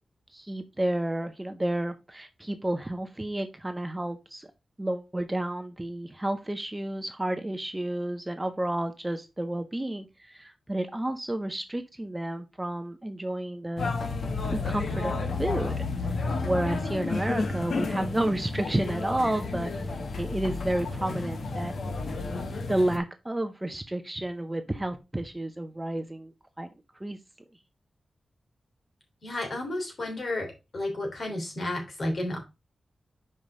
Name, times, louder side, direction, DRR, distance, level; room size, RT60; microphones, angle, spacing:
voice 1, 0.3-4.5 4.8-13.9 14.5-21.7 22.7-26.7 27.0-27.2, right 1 dB, 15° right, 0.6 m, -31 dB
sound 1, 13.8-23.0, left 3 dB, 80° left, 1.1 m, -31 dB
voice 2, 29.2-30.5 30.7-32.4, left 1 dB, 45° left, 3.1 m, -31 dB
5.5 x 5.0 x 4.9 m
wide cardioid pair, 135°, 0 cm